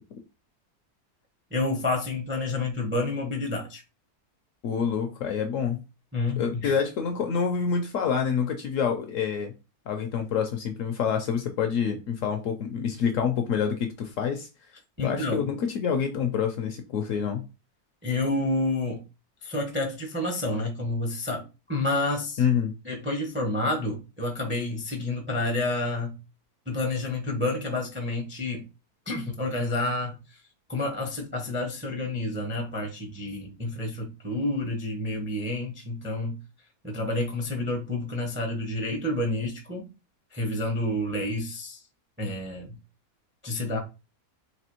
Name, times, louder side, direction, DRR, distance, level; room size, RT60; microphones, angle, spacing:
voice 1, 1.5-3.8 6.1-6.8 15.0-15.5 18.0-19.0 19.4-22.4 22.8-26.2 26.7-28.6 29.1-30.2 30.7-36.4 36.8-39.9 40.3-41.8 42.2-42.8 43.4-43.8, left 2 dB, 15° right, 0.4 m, -29 dB
voice 2, 4.6-5.8 6.4-9.5 9.9-14.5 15.0-17.4 22.4-22.7, left 7 dB, 70° left, 0.8 m, -27 dB
4.1 x 2.8 x 2.9 m
omnidirectional pair, 1.7 m